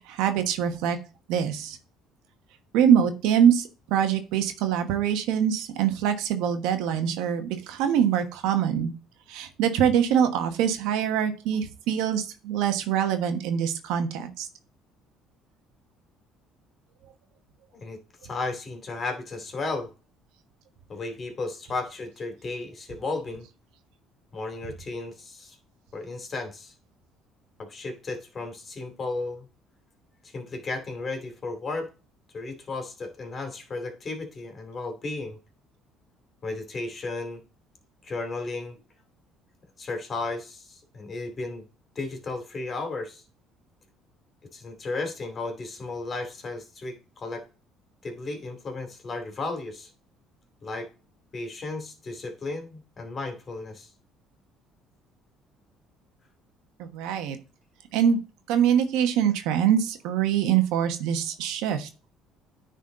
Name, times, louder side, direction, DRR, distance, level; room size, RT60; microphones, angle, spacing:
voice 1, 0.1-1.0 1.3-1.8 2.7-8.9 9.3-14.5 56.8-57.4 57.9-58.2 58.5-61.9, right 9 dB, 80° right, 7 dB, 1.2 m, -24 dB
voice 2, 17.7-19.9 20.9-23.5 24.3-25.6 25.9-26.7 27.6-29.5 30.2-31.9 32.3-35.4 36.4-37.4 38.0-38.8 39.8-41.6 41.9-43.2 44.5-47.4 48.0-49.9 50.6-50.9 51.3-53.9, left 3 dB, 40° left, 5 dB, 2.7 m, -34 dB
9.7 x 4.1 x 3.8 m, 0.33 s
supercardioid pair, 75°, 0 cm